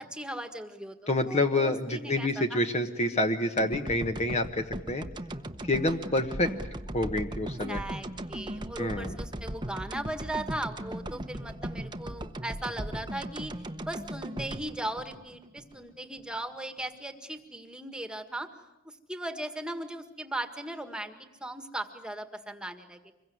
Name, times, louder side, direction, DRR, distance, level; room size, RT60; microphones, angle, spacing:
voice 1, 0.0-2.7 3.0-3.3 7.7-13.5 13.8-18.5 18.9-21.2 21.4-23.0, right 1 dB, 5° right, 7 dB, 1.7 m, -38 dB
voice 2, 1.1-5.1 5.7-6.5 6.9-7.8 8.8-9.1, left 1 dB, 30° left, 6 dB, 1.3 m, -28 dB
sound 1, 3.6-15.8 16.2-16.3, right 1 dB, 20° right, 1.0 m, -38 dB
26.0 x 22.5 x 9.5 m, 0.95 s
head